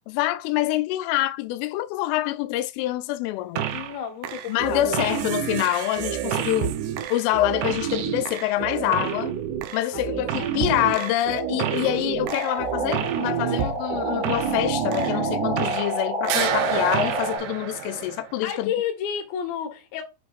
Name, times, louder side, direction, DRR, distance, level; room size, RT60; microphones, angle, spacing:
voice 1, 0.1-3.7 4.5-6.7 7.1-9.3 9.7-18.7, left 15 dB, 90° left, 3.1 m, -26 dB
sound 1, 3.6-4.0 4.2-16.0 16.2-18.4, right 10 dB, 80° right, 2.6 m, -28 dB
voice 2, 3.7-4.9 5.2-5.6 9.9-11.1 13.4-13.7 18.4-20.0, left 8 dB, 65° left, 2.7 m, -32 dB
sound 2, 12.2-17.4, equal, 25° right, 1.2 m, -29 dB
8.3 x 5.2 x 2.4 m
omnidirectional pair, 5.5 m